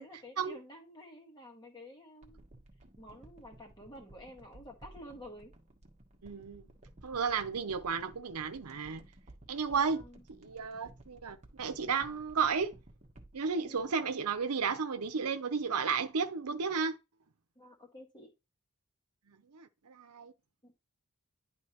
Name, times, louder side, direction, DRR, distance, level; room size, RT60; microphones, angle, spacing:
voice 1, 0.0-2.4 3.0-5.5 9.7-10.2 13.5-13.8 17.5-18.3 20.6-20.7, left 1 dB, 20° left, 1.6 m, -51 dB
sound 1, 2.2-14.7 15.0-15.1, right 1 dB, 30° right, 1.1 m, -57 dB
voice 2, 6.2-6.6 7.0-9.0 9.5-10.0 10.3-12.7 13.3-17.0 19.3-20.3, right 5 dB, 90° right, 0.8 m, -33 dB
10.5 x 3.6 x 3.0 m
head